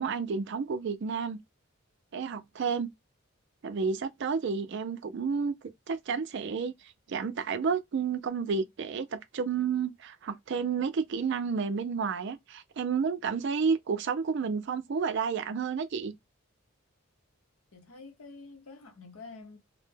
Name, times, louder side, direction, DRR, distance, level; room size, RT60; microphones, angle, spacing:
voice 1, 0.0-1.4 2.1-2.9 3.6-5.5 5.9-6.7 7.1-16.1, right 5 dB, 55° right, 0.4 m, -31 dB
voice 2, 17.7-19.6, left 3 dB, 75° left, 0.7 m, -48 dB
2.1 x 2.0 x 3.2 m
head